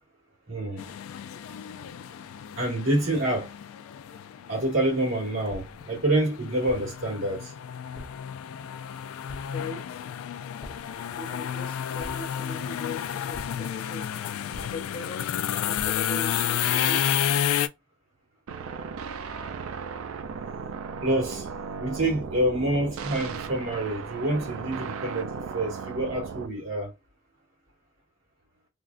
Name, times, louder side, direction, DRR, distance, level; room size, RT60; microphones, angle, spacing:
voice 1, 0.5-0.8 2.6-3.5 4.5-7.5 21.0-21.5 21.8-26.9, right 1 dB, 70° right, 2.0 m, -27 dB
sound 1, 0.8-17.7, left 10 dB, 85° left, 0.3 m, -31 dB
sound 2, 5.5-6.0 6.7-7.1 7.9-8.3 9.3-9.7 10.6-11.0 12.0-12.5 13.3-13.8 14.5-15.1 15.7-16.2, equal, 5° left, 0.9 m, -44 dB
voice 2, 9.5-10.0 11.1-14.1 14.7-17.0, left 3 dB, 45° left, 0.8 m, -39 dB
sound 3, 18.5-26.5, right 5 dB, 85° right, 0.4 m, -36 dB
3.6 x 2.1 x 2.5 m
head